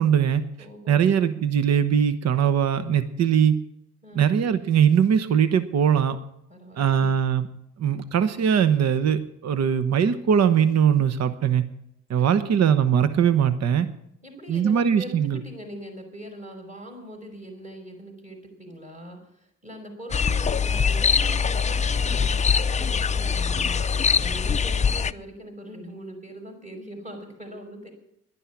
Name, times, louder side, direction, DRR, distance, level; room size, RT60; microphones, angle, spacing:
voice 1, 0.0-0.4 0.9-3.6 4.2-6.2 6.8-7.5 7.8-11.6 12.1-13.9 14.5-15.4, right 8 dB, 60° right, 11 dB, 1.0 m, -21 dB
voice 2, 0.6-1.4 4.0-4.3 6.5-7.1 12.2-12.7 14.2-23.9 24.2-27.9, right 1 dB, 25° right, 2 dB, 5.5 m, -41 dB
sound 1, 20.1-25.1, left 6 dB, 25° left, 0.5 m, -23 dB
11.5 x 11.0 x 8.5 m, 0.77 s
cardioid pair, 90°, 30 cm